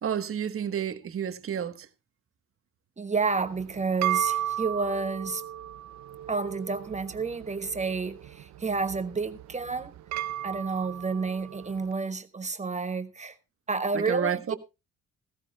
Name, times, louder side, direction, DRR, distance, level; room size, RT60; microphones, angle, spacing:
voice 1, 0.0-1.9 13.9-14.6, right 8 dB, 45° right, 1.3 m, -30 dB
voice 2, 3.0-5.4 6.3-9.9 10.4-13.4 13.7-14.6, right 4 dB, 25° right, 1.3 m, -30 dB
sound 1, 3.4-11.9, right 11 dB, 65° right, 0.6 m, -35 dB
16.5 x 14.5 x 2.2 m
cardioid pair, 90°, 30 cm